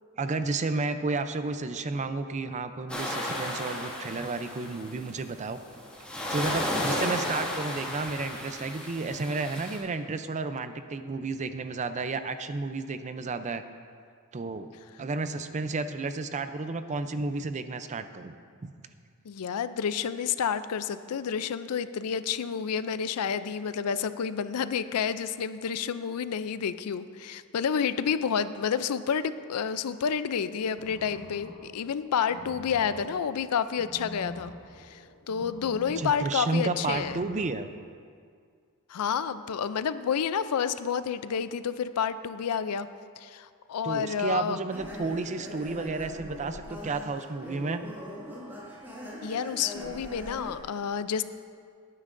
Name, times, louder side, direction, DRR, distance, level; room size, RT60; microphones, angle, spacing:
voice 1, 0.2-5.6 6.3-13.6 14.3-14.7 15.0-18.3 18.6-18.7 36.0-37.7 43.8-47.8, right 3 dB, 30° right, 10 dB, 0.5 m, -32 dB
sound 1, 2.9-5.1 5.7-9.8, left 1 dB, 5° left, 1.9 m, -33 dB
voice 2, 19.3-34.5 34.8-37.2 38.9-42.9 43.2-44.6 49.2-51.2, left 7 dB, 85° left, 13 dB, 0.4 m, -29 dB
sound 2, 30.7-37.5, equal, 65° left, 2.9 m, -46 dB
sound 3, 44.7-50.6, equal, 10° right, 2.0 m, -41 dB
18.5 x 9.8 x 2.6 m, 2.1 s
head